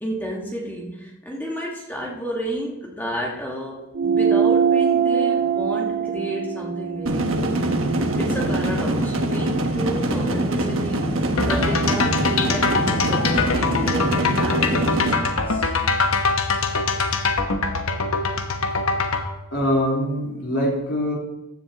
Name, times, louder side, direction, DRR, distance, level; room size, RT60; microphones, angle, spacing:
voice 1, 0.0-7.6 8.1-11.2 11.4-15.7, equal, 10° left, -2 dB, 1.6 m, -31 dB
sound 1, 3.9-8.8, right 7 dB, 50° right, 0.3 m, -23 dB
sound 2, 7.1-15.1, right 1 dB, 70° right, 1.2 m, -23 dB
sound 3, 11.4-19.3, left 4 dB, 80° left, 1.1 m, -23 dB
voice 2, 19.5-21.2, equal, 60° left, -4 dB, 3.8 m, -23 dB
15.0 x 10.0 x 2.9 m, 0.95 s
head